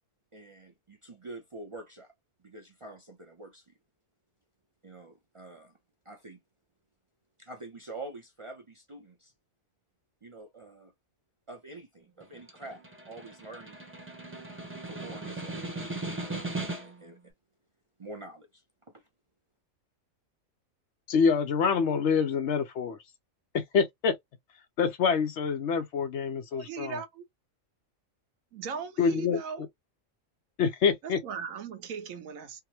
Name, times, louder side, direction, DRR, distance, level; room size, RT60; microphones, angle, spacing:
voice 1, 0.3-2.1 2.4-3.7 4.8-5.7 6.1-6.4 7.4-9.3 10.2-10.9 11.5-13.8 14.9-15.7 16.1-17.3 18.0-18.6 18.9-19.1, right 2 dB, 50° right, 0.4 m, -46 dB
Snare drum, 12.2-17.1, right 2 dB, 10° right, 0.7 m, -38 dB
voice 2, 21.1-23.0 23.5-24.1 24.8-27.0 29.0-29.4 30.6-31.2, left 6 dB, 65° left, 0.8 m, -26 dB
voice 3, 26.5-27.2 28.5-29.6 31.0-32.6, right 6 dB, 85° right, 1.2 m, -38 dB
3.5 x 2.0 x 2.8 m
omnidirectional pair, 1.4 m